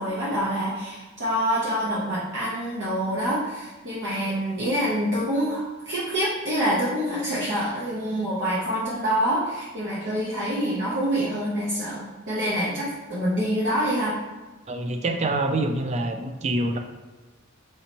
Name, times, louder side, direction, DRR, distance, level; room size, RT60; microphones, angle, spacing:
voice 1, 0.0-14.1, equal, 55° right, -8 dB, 0.7 m, -26 dB
voice 2, 14.7-16.8, right 2 dB, 30° right, 5 dB, 0.3 m, -26 dB
4.3 x 2.7 x 2.9 m, 1.2 s
head